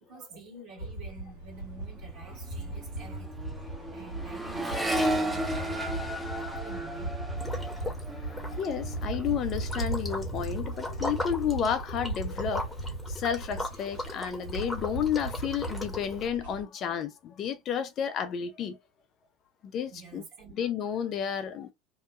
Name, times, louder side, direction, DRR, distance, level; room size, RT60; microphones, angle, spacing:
voice 1, 0.0-7.4 19.9-20.5, right 4 dB, 50° right, 1.4 m, -49 dB
sound 1, 0.8-16.6, right 2 dB, 90° right, 1.3 m, -37 dB
Accelerating revving vroom, 1.7-9.8 10.1-10.7, right 1 dB, 10° right, 0.7 m, -34 dB
Liquid, 7.4-8.1 8.3-16.3, left 2 dB, 10° left, 0.9 m, -38 dB
voice 2, 8.2-12.8 13.1-18.8 19.6-20.2 20.6-21.7, left 8 dB, 40° left, 0.5 m, -31 dB
2.7 x 2.1 x 2.3 m
figure-of-eight pair, 75°, 0 cm